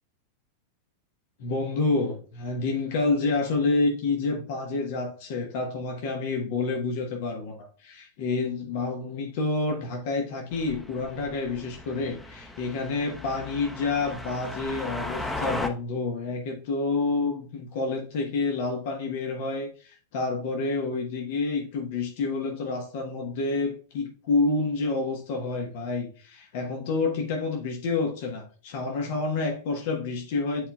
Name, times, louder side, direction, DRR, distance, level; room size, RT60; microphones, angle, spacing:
voice 1, 1.4-30.7, left 3 dB, 50° left, 1.3 m, -28 dB
sound 1, 10.5-15.7, left 1 dB, 5° left, 0.9 m, -36 dB
9.7 x 4.1 x 2.3 m
figure-of-eight pair, 90°, 0 cm